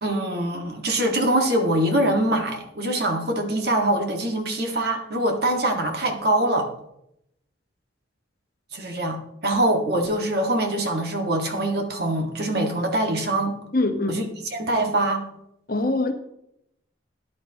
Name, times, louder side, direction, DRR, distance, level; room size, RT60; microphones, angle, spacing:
voice 1, 0.0-6.7 8.7-13.6 14.1-15.3, right 1 dB, 55° right, 3 dB, 1.8 m, -24 dB
voice 2, 13.7-14.3 15.7-16.1, left 2 dB, 50° left, 6 dB, 1.2 m, -23 dB
13.5 x 10.5 x 3.0 m, 0.78 s
head